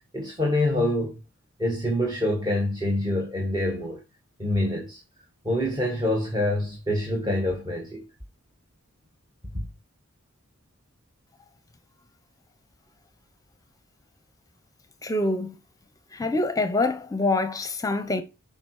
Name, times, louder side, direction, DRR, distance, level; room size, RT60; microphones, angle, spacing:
voice 1, 0.1-1.2 1.6-4.0 4.4-5.0 5.4-8.0 9.5-9.6, left 1 dB, 20° right, 1.6 m, -26 dB
voice 2, 15.0-15.5 16.1-18.2, left 2 dB, 15° left, 0.9 m, -25 dB
7.2 x 5.0 x 4.8 m
head